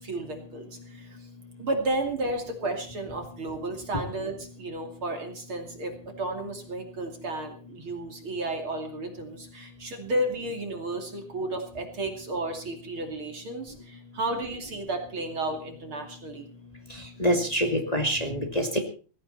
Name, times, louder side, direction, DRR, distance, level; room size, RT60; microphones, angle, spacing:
voice 1, 0.0-1.2 1.6-16.5, right 2 dB, 35° right, 3 dB, 2.7 m, -33 dB
voice 2, 17.2-18.8, equal, 30° left, 3 dB, 0.7 m, -25 dB
19.0 x 15.5 x 4.3 m, 0.38 s
omnidirectional pair, 5.3 m